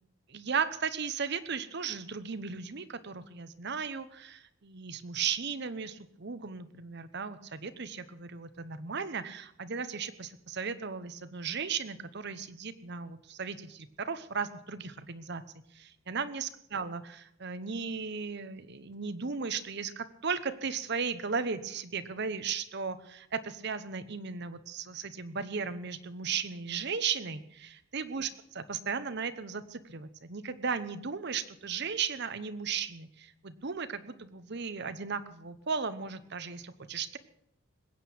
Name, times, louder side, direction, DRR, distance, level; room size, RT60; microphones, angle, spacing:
voice 1, 0.3-15.4 15.7-37.2, right 6 dB, 55° right, 12 dB, 0.9 m, -36 dB
21.0 x 9.0 x 6.1 m, 0.72 s
head